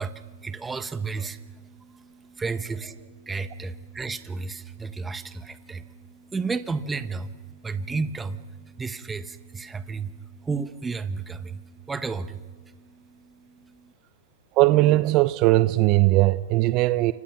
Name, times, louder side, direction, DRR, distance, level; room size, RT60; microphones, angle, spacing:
voice 1, 0.0-13.9, right 4 dB, 10° right, 1.1 m, -33 dB
voice 2, 14.6-17.1, right 18 dB, 40° right, 0.7 m, -19 dB
29.0 x 25.0 x 5.9 m
hypercardioid pair, 130°, 0 cm